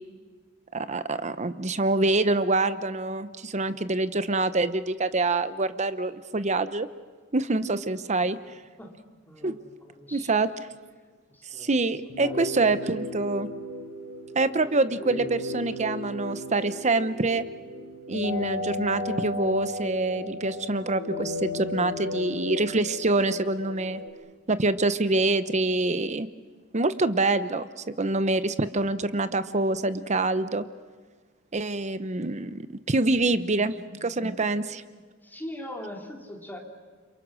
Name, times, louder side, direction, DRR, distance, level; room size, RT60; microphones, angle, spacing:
voice 1, 0.7-6.9 7.3-8.4 9.4-9.6 10.1-10.5 11.6-13.5 14.3-17.4 18.1-24.0 24.5-26.3 26.7-30.6 31.5-32.6 32.9-33.7 34.0-34.8, right 2 dB, 35° right, 13 dB, 0.9 m, -26 dB
voice 2, 9.3-10.6 11.3-11.8 12.1-12.4 33.2-33.8 34.5-34.9 35.2-36.6, left 1 dB, 10° left, 1 dB, 3.2 m, -42 dB
sound 1, 12.1-24.1, left 2 dB, 85° left, 4.0 m, -35 dB
29.5 x 27.0 x 6.3 m, 1.5 s
head